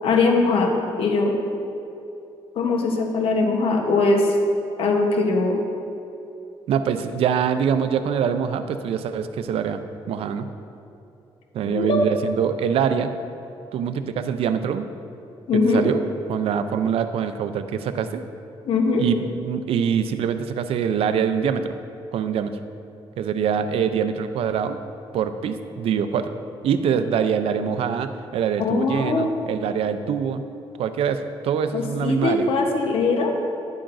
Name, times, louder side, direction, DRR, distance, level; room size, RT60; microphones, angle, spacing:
voice 1, 0.0-1.4 2.6-4.3 4.8-5.6 11.6-12.1 15.5-15.9 18.7-19.1 28.6-29.3 31.7-33.3, left 3 dB, 70° left, 2 dB, 0.9 m, -21 dB
voice 2, 6.7-9.8 10.1-10.5 11.5-13.1 13.7-14.9 15.5-16.0 16.3-18.2 19.0-21.7 22.1-22.6 23.2-24.8 25.1-26.3 26.6-30.4 30.8-32.5, right 7 dB, 80° right, 10 dB, 0.5 m, -24 dB
10.5 x 8.7 x 2.6 m, 2.7 s
cardioid pair, 115°, 10 cm